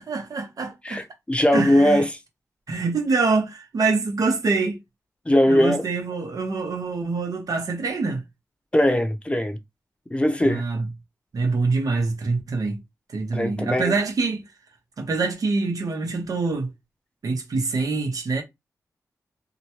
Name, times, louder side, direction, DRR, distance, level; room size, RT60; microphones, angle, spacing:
voice 1, 0.0-1.0 1.5-2.0 2.7-4.8 5.5-8.2 10.4-10.9 11.3-12.8 13.1-14.4 15.0-16.7 17.2-18.4, right 3 dB, 75° right, 0.9 m, -25 dB
voice 2, 0.8-2.2 5.3-5.9 8.7-9.6 10.1-10.6 13.3-13.9, left 1 dB, 20° left, 0.6 m, -20 dB
2.9 x 2.2 x 2.8 m
cardioid pair, 60°, 6 cm